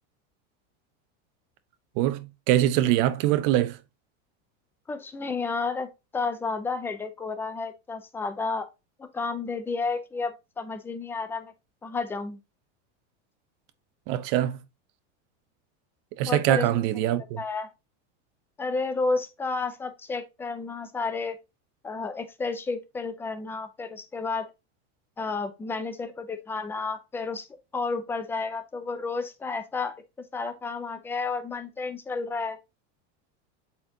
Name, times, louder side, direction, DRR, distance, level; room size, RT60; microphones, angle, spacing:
voice 1, 2.0-3.8 14.1-14.6 16.2-17.4, right 13 dB, 50° right, 0.9 m, -23 dB
voice 2, 4.9-5.9 6.1-8.7 9.0-11.5 11.8-12.4 16.3-16.7 17.4-17.7 18.6-21.4 21.8-24.5 25.2-27.5 27.7-29.9 30.3-32.6, left 4 dB, 5° left, 0.3 m, -31 dB
7.8 x 4.4 x 2.8 m
supercardioid pair, 165°, 35 cm